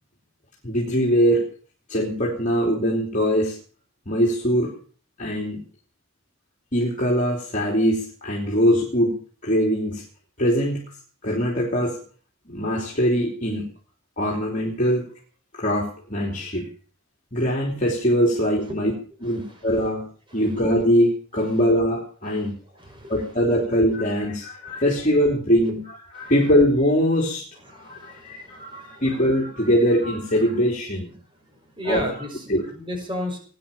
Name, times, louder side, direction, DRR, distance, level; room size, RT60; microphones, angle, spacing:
voice 1, 0.6-1.4 1.9-3.6 4.0-4.7 5.2-5.6 6.7-9.2 9.4-10.0 10.4-10.8 11.2-12.0 12.5-13.7 14.2-15.1 15.5-16.7 17.3-18.9 19.2-20.0 20.3-22.5 23.1-27.5 27.7-31.1 31.8-32.1 32.5-32.6, equal, 40° left, -2 dB, 3.3 m, -22 dB
voice 2, 19.3-19.6 20.3-20.4 22.3-22.5 22.8-23.1 24.7-24.8 26.2-26.3 27.7-29.0 31.8-33.4, equal, 25° right, 3 dB, 5.7 m, -34 dB
18.5 x 10.5 x 7.1 m, 0.43 s
head